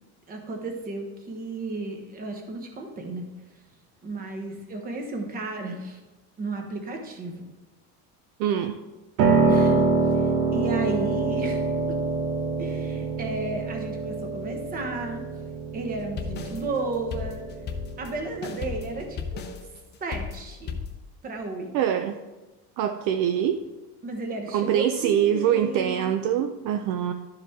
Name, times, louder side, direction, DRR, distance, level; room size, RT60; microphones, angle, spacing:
voice 1, 0.3-3.2 4.0-6.0 6.4-7.5 9.5-12.0 12.6-15.2 15.7-17.4 18.0-19.6 20.0-20.8 21.2-21.7 24.0-26.1, right 2 dB, 25° right, 3 dB, 1.0 m, -33 dB
voice 2, 8.4-8.8 21.7-22.2 22.8-23.6 24.5-27.1, right 9 dB, 60° right, 7 dB, 0.5 m, -24 dB
Piano, 9.2-19.1, right 4 dB, 80° right, 1.3 m, -26 dB
sound 1, 15.9-21.0, left 6 dB, 30° left, 0.6 m, -35 dB
12.0 x 4.9 x 3.6 m, 1.1 s
cardioid pair, 170°, 37 cm